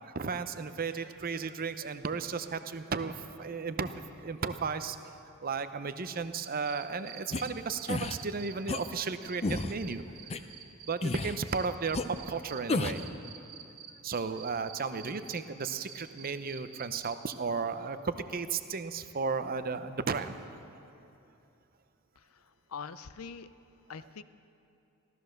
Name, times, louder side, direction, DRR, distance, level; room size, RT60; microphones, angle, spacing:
voice 1, 0.0-10.0 10.8-12.0 12.3-13.0 14.0-20.4, right 5 dB, 45° right, 10 dB, 0.7 m, -34 dB
sound 1, 6.2-8.9 9.2-12.6 12.9-17.4, right 9 dB, 80° right, 1.5 m, -47 dB
sound 2, 7.3-7.4 7.9-8.2 8.7-8.8 9.4-9.7 10.3-10.4 11.0-11.4 11.9-12.0 12.7-13.1, left 2 dB, 30° left, 0.5 m, -31 dB
voice 2, 22.2-23.5 23.9-24.2, left 6 dB, 80° left, 14 dB, 0.6 m, -44 dB
15.5 x 13.5 x 6.5 m, 2.8 s
head